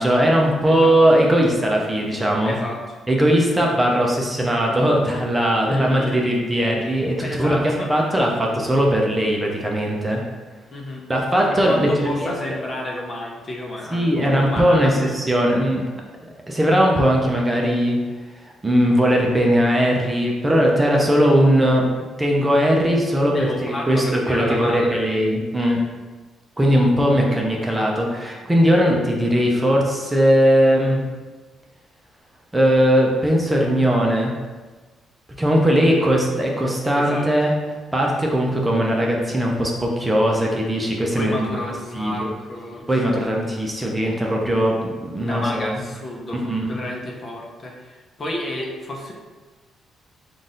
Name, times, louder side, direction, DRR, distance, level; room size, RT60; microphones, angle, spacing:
voice 1, 0.0-2.5 3.1-10.2 11.1-12.3 13.9-15.8 16.5-18.0 18.6-21.9 22.2-25.8 26.6-31.0 32.5-34.3 35.4-37.5 37.9-41.5 41.9-42.3 42.9-45.8 46.3-46.8, equal, 15° right, -1 dB, 0.7 m, -19 dB
voice 2, 0.7-1.0 2.4-2.8 3.3-3.4 5.6-6.2 7.2-8.2 10.7-11.0 11.4-15.1 20.7-21.1 23.3-25.0 25.7-25.9 35.8-36.2 36.9-37.3 41.2-43.3 45.2-46.4 46.7-49.1, left 1 dB, 40° left, -1 dB, 0.8 m, -31 dB
3.9 x 2.5 x 3.8 m, 1.3 s
cardioid pair, 90°, 0 cm